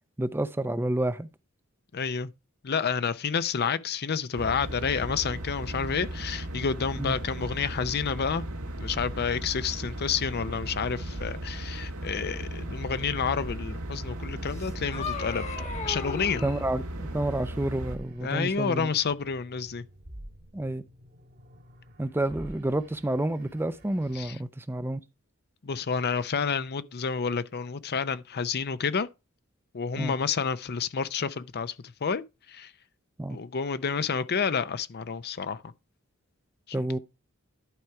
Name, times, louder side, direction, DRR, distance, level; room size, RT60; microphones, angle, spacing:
voice 1, 0.2-1.3 7.0-7.2 15.6-15.7 16.4-18.9 20.5-20.8 22.0-25.0 30.0-30.1 33.2-33.4 36.7-37.0, right 1 dB, 10° right, 0.5 m, -29 dB
voice 2, 1.9-2.3 2.6-8.4 8.8-15.4 15.8-16.4 18.2-19.8 24.2-24.3 25.6-29.1 29.7-31.8 32.0-32.2 32.5-32.7 33.3-35.7, left 6 dB, 50° left, 0.6 m, -29 dB
sound 1, 4.3-18.0, right 1 dB, 85° right, 1.8 m, -36 dB
sound 2, 7.1-24.4, equal, 50° right, 1.6 m, -49 dB
sound 3, 14.5-16.7, left 5 dB, 30° left, 1.3 m, -36 dB
11.5 x 4.6 x 4.7 m
head